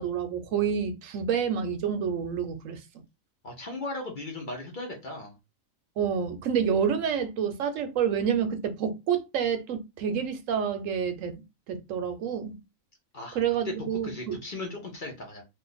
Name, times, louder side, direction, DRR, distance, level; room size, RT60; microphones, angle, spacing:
voice 1, 0.0-2.8 6.0-12.6 13.3-14.4, right 7 dB, 70° right, 1.0 m, -28 dB
voice 2, 3.4-5.3 13.1-13.4 13.6-13.7 14.0-15.4, left 2 dB, 45° left, 0.8 m, -37 dB
2.5 x 2.5 x 3.8 m
omnidirectional pair, 1.4 m